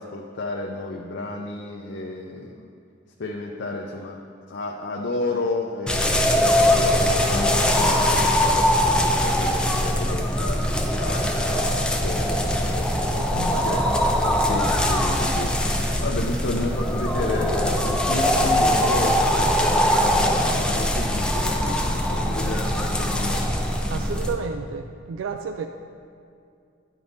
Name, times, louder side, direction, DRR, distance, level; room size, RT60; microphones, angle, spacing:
voice 1, 0.0-2.7 3.2-4.2 4.5-8.7 9.0-13.9 14.5-23.6, left 2 dB, 60° left, -1 dB, 0.5 m, -32 dB
sound 1, 5.9-24.3, equal, 5° left, 0.4 m, -22 dB
voice 2, 13.0-13.7 22.4-22.7 23.9-25.7, right 5 dB, 85° right, 6 dB, 0.3 m, -32 dB
10.0 x 5.2 x 4.0 m, 2.4 s
head